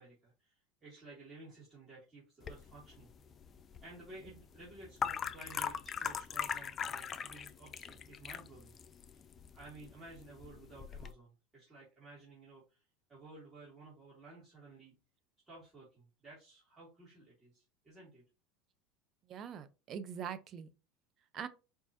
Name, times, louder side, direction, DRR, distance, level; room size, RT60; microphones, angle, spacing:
voice 1, 0.0-3.1 3.8-8.8 9.1-9.3 9.5-12.8 13.1-14.9 15.5-18.2, right 2 dB, 30° right, 2.4 m, -54 dB
sound 1, 2.4-11.1, left 7 dB, 35° left, 0.4 m, -41 dB
voice 2, 19.3-20.7 21.3-21.5, right 8 dB, 45° right, 0.5 m, -43 dB
4.5 x 3.0 x 2.8 m
hypercardioid pair, 80°, 0 cm